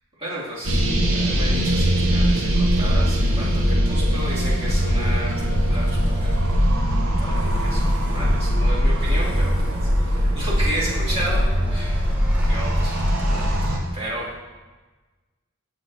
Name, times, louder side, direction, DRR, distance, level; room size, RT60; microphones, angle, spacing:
voice 1, 0.2-6.5 7.2-12.1 12.4-13.6 13.9-14.4, right 1 dB, 30° right, -9 dB, 2.2 m, -33 dB
sound 1, 0.6-13.8, equal, 80° right, 0.9 m, -21 dB
sound 2, 3.0-13.6, equal, 5° right, 0.7 m, -38 dB
7.5 x 7.2 x 2.7 m, 1.3 s
head